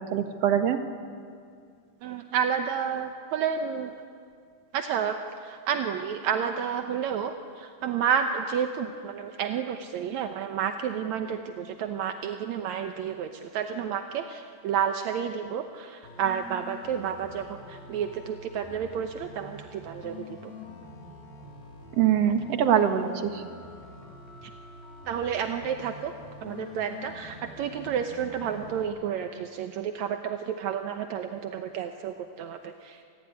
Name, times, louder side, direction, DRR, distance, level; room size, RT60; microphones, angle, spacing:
voice 1, 0.1-0.8 22.0-23.4, right 9 dB, 55° right, 7 dB, 2.2 m, -23 dB
voice 2, 2.0-3.9 4.7-20.5 24.4-24.5 25.1-26.1 26.4-33.0, right 8 dB, 70° right, 6 dB, 1.8 m, -30 dB
sound 1, 16.0-28.8, left 2 dB, 80° left, 5.6 m, -46 dB
27.0 x 20.0 x 9.9 m, 2.2 s
omnidirectional pair, 4.3 m